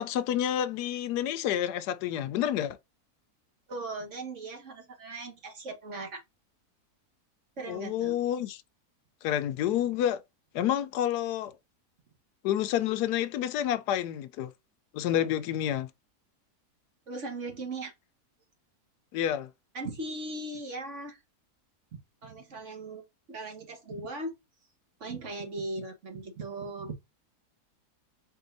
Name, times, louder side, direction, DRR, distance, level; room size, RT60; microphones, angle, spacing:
voice 1, 0.0-2.8 7.7-8.6 9.2-10.2 10.5-11.5 12.4-14.5 14.9-15.9 19.1-19.5, left 11 dB, 85° left, 1.1 m, -29 dB
voice 2, 3.7-6.2 7.6-8.1 17.1-17.9 19.7-21.2 22.2-24.4 25.0-26.9, right 2 dB, 50° right, 1.6 m, -38 dB
4.7 x 4.3 x 2.6 m
omnidirectional pair, 1.7 m